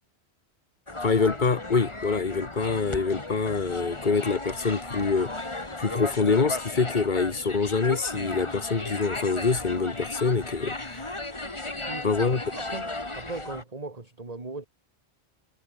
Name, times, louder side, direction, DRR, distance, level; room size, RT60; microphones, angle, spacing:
sound 1, 0.9-13.6, left 2 dB, 25° left, 2.2 m, -35 dB
voice 1, 1.0-11.1 12.0-12.4, left 4 dB, 45° left, 1.7 m, -25 dB
voice 2, 11.9-14.7, right 3 dB, 35° right, 2.3 m, -39 dB
omnidirectional pair, 1.1 m